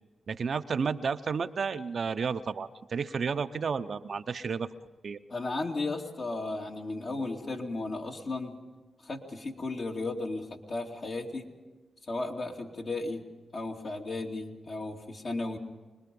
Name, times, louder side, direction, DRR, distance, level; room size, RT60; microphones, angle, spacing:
voice 1, 0.3-4.7 5.0-5.2, right 5 dB, 60° right, 9 dB, 0.8 m, -31 dB
voice 2, 5.3-8.6 9.0-11.5 12.1-13.3 13.5-15.6, left 2 dB, 55° left, 0 dB, 2.8 m, -35 dB
25.0 x 20.5 x 5.4 m, 1.3 s
supercardioid pair, 45°, 0 cm